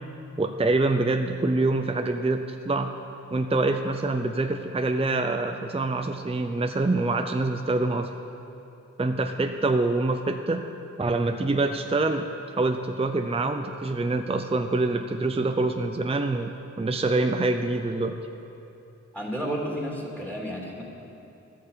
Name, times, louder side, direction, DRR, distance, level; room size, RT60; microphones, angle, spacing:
voice 1, 0.4-3.0 3.3-8.1 9.0-10.6 11.0-18.2, right 2 dB, 20° right, 6 dB, 0.6 m, -25 dB
voice 2, 19.1-20.8, equal, 5° left, -2 dB, 2.6 m, -31 dB
12.5 x 8.6 x 6.9 m, 3.0 s
cardioid pair, 50°, 31 cm